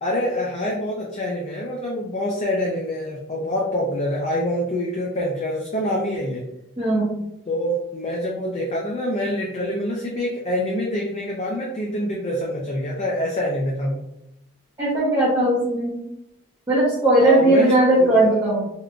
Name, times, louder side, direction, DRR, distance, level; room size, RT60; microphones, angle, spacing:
voice 1, 0.0-6.4 7.5-14.0 17.2-18.1, left 1 dB, 30° left, -2 dB, 0.4 m, -26 dB
voice 2, 6.8-7.2 14.8-16.0 16.7-18.7, right 1 dB, 20° right, -9 dB, 0.7 m, -18 dB
3.6 x 2.3 x 2.3 m, 0.83 s
head